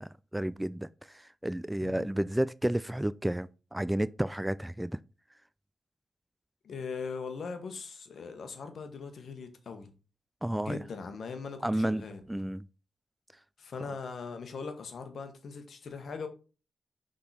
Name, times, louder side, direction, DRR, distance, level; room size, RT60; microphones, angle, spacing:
voice 1, 0.0-5.0 10.4-10.8 11.6-12.0 12.3-12.7, right 1 dB, 10° right, 0.3 m, -31 dB
voice 2, 6.6-9.9 10.6-12.2 13.6-16.3, left 5 dB, 70° left, 1.2 m, -40 dB
6.0 x 3.8 x 4.2 m
supercardioid pair, 40°, 0 cm